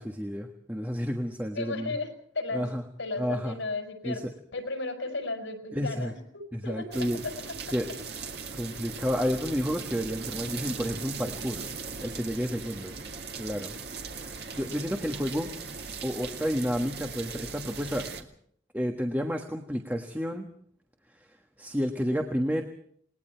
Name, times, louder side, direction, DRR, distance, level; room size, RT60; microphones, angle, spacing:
voice 1, 0.0-1.9 2.5-2.8 3.2-3.6 4.0-4.2 5.7-6.1 6.5-7.2 7.7-8.2 8.5-11.6 12.0-12.9 13.4-13.7 14.2-15.5 16.0-18.1 18.7-20.5 21.2-21.3 21.6-22.6, equal, 10° right, 3 dB, 1.4 m, -31 dB
voice 2, 1.5-2.1 2.3-2.7 3.0-4.2 4.5-7.3 7.7-7.8, left 3 dB, 80° left, 5 dB, 5.6 m, -34 dB
sound 1, 6.9-18.2, right 5 dB, 55° right, 2.2 m, -39 dB
29.0 x 20.0 x 4.6 m, 0.63 s
head